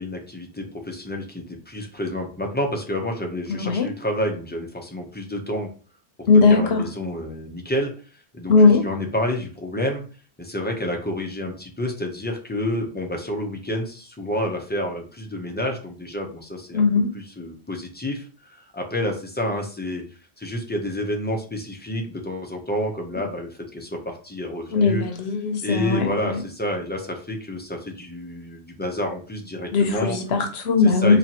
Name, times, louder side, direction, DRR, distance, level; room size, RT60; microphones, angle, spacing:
voice 1, 0.0-5.7 6.3-7.9 8.3-10.0 10.4-16.9 17.1-20.0 20.4-25.0 25.6-30.2 30.8-31.2, left 1 dB, 10° left, 2 dB, 0.7 m, -29 dB
voice 2, 3.5-3.9 6.3-6.8 8.5-8.8 16.7-17.1 24.7-26.1 29.7-31.2, left 4 dB, 85° left, 5 dB, 1.0 m, -18 dB
4.2 x 3.0 x 2.9 m, 0.38 s
omnidirectional pair, 1.0 m